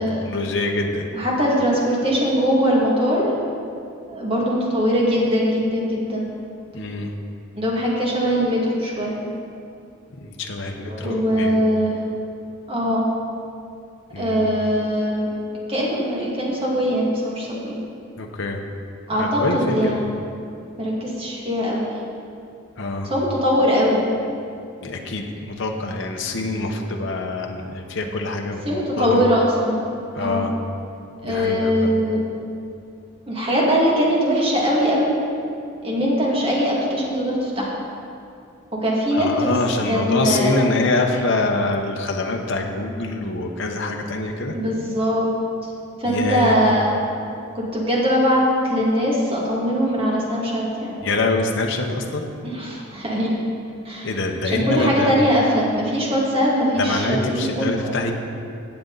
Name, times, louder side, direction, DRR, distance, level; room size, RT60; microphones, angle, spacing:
voice 1, 0.2-1.1 6.7-7.1 10.2-11.5 14.1-14.4 18.2-18.6 19.1-20.0 22.8-23.1 24.8-29.2 30.1-30.5 31.2-31.9 39.1-44.5 46.0-46.7 51.0-52.3 54.0-55.1 56.8-58.1, left 2 dB, 60° left, 1 dB, 1.0 m, -25 dB
voice 2, 1.1-3.3 4.1-6.3 7.6-9.1 10.9-12.0 12.7-13.0 14.2-15.3 15.7-17.8 19.1-20.1 20.8-21.9 23.1-24.0 28.6-29.9 30.1-30.4 31.2-32.2 33.3-35.1 35.8-37.7 38.7-39.6 39.9-40.6 44.5-45.3 46.0-46.9 47.5-50.9 52.4-53.3 53.8-54.1 54.5-58.0, equal, 25° right, -4 dB, 2.1 m, -21 dB
15.5 x 8.0 x 4.0 m, 2.5 s
head